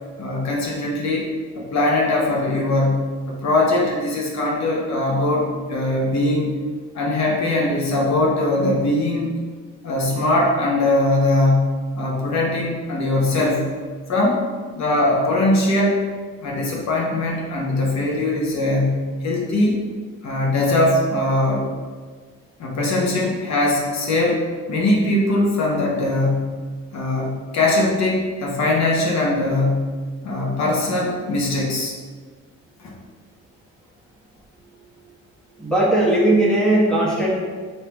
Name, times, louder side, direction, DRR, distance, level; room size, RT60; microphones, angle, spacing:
voice 1, 0.2-6.5 6.9-9.4 9.8-13.7 14.1-14.4 14.7-16.0 16.4-19.8 20.2-21.7 22.6-24.4 24.7-26.6 26.9-29.9 30.2-31.9 32.8-32.9, left 2 dB, 65° left, -3 dB, 0.9 m, -21 dB
voice 2, 35.6-37.3, right 1 dB, ahead, -6 dB, 1.2 m, -18 dB
3.3 x 2.8 x 4.5 m, 1.5 s
cardioid pair, 90°, 30 cm